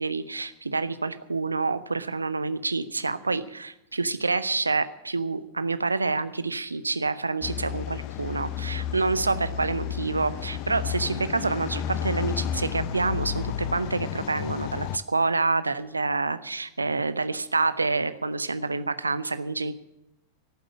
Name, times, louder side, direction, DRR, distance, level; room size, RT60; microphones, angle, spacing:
voice 1, 0.0-19.7, right 3 dB, 80° right, 14 dB, 0.7 m, -27 dB
sound 1, 7.4-15.0, left 10 dB, 45° left, 0.7 m, -32 dB
14.5 x 7.7 x 9.8 m, 0.84 s
figure-of-eight pair, 90°, 0 cm